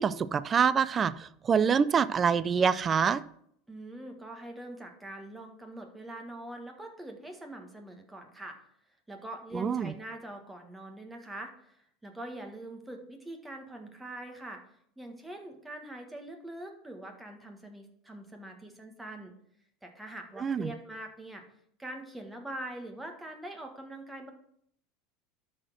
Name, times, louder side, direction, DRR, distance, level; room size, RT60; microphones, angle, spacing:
voice 1, 0.0-3.2 9.5-9.9 20.4-20.7, right 6 dB, 25° right, 16 dB, 0.4 m, -26 dB
voice 2, 3.7-8.6 9.1-14.6 15.0-19.3 19.8-21.4 21.8-24.3, right 1 dB, 10° right, 3 dB, 1.7 m, -43 dB
12.5 x 4.3 x 6.1 m, 0.69 s
supercardioid pair, 130°, 0 cm